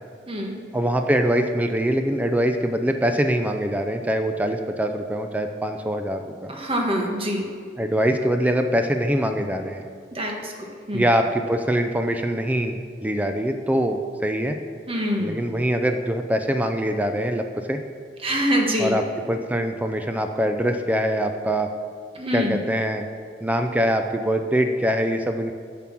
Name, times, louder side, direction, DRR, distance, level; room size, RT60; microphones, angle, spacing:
voice 1, 0.7-6.6 7.8-9.9 10.9-14.6 15.2-17.8 18.8-21.7 22.3-23.0 23.4-25.5, equal, 10° right, 6 dB, 0.4 m, -23 dB
voice 2, 6.5-7.5 10.1-10.5 10.9-11.0 14.9-15.4 18.2-18.9 22.2-22.5, equal, 30° right, 1 dB, 1.4 m, -24 dB
7.6 x 7.2 x 5.9 m, 2.1 s
head